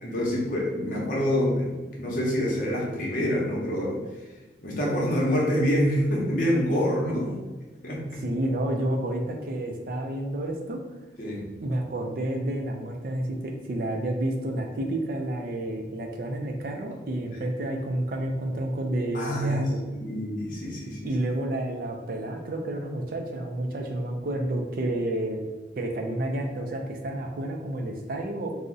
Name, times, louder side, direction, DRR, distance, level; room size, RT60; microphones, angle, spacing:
voice 1, 0.0-4.0 4.6-7.3 7.8-8.2 11.2-11.5 17.3-17.4 19.1-19.6 19.9-21.1, equal, 45° left, -3 dB, 0.7 m, -26 dB
voice 2, 8.2-10.8 11.6-19.8 21.0-25.5 25.8-28.6, right 1 dB, 50° right, 3 dB, 0.4 m, -30 dB
2.6 x 2.0 x 3.6 m, 1.2 s
head